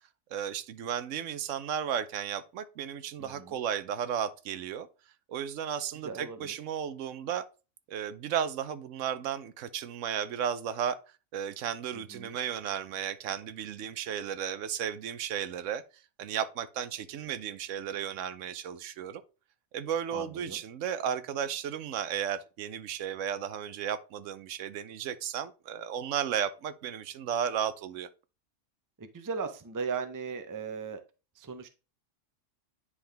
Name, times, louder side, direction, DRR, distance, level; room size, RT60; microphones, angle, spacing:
voice 1, 0.3-4.9 5.3-7.4 7.9-11.0 11.3-15.8 16.2-19.2 19.7-28.1, right 9 dB, 85° right, 1.0 m, -34 dB
voice 2, 3.2-3.6 5.9-6.5 11.9-12.3 20.1-20.6 29.0-31.0 31.4-31.7, right 5 dB, 25° right, 0.4 m, -37 dB
9.7 x 3.7 x 3.3 m
omnidirectional pair, 1.3 m